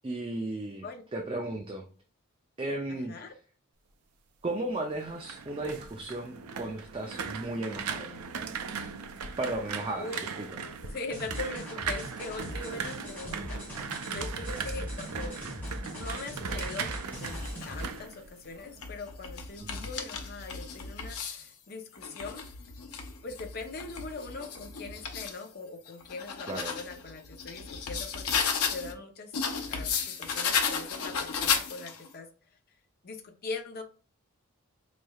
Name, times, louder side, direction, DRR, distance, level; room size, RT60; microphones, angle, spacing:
voice 1, 0.0-0.8 1.1-1.8 2.6-3.1 4.4-8.1 9.4-10.1 10.4-10.5 19.6-19.9 26.5-26.7, right 2 dB, 25° right, 1 dB, 0.4 m, -35 dB
voice 2, 2.9-3.4 7.5-8.2 9.9-10.3 10.8-15.4 15.9-22.4 23.2-29.3 29.7-32.3 33.0-33.8, left 3 dB, 45° left, 4 dB, 0.6 m, -41 dB
sound 1, 4.9-18.9 19.2-19.6, right 6 dB, 85° right, 0.5 m, -38 dB
sound 2, 11.1-17.8, equal, 10° left, 1.5 m, -39 dB
sound 3, 17.1-17.8 18.5-21.5 21.9-25.4 25.9-28.9 29.3-32.1, left 6 dB, 90° left, 0.7 m, -34 dB
4.1 x 3.2 x 2.3 m, 0.38 s
head